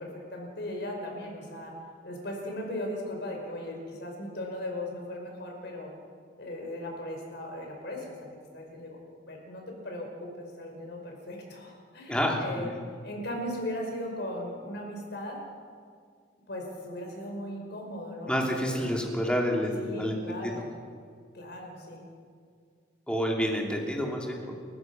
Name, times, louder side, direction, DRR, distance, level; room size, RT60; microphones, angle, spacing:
voice 1, 0.0-1.7 2.0-5.9 6.4-8.3 8.5-9.0 9.3-12.7 13.0-15.4 16.5-19.0 19.8-20.6 21.3-22.0, left 1 dB, 60° left, 1 dB, 5.4 m, -38 dB
voice 2, 12.1-12.8 18.3-20.6 23.1-24.5, equal, 5° left, 0 dB, 3.0 m, -29 dB
30.0 x 15.0 x 6.1 m, 2.1 s
head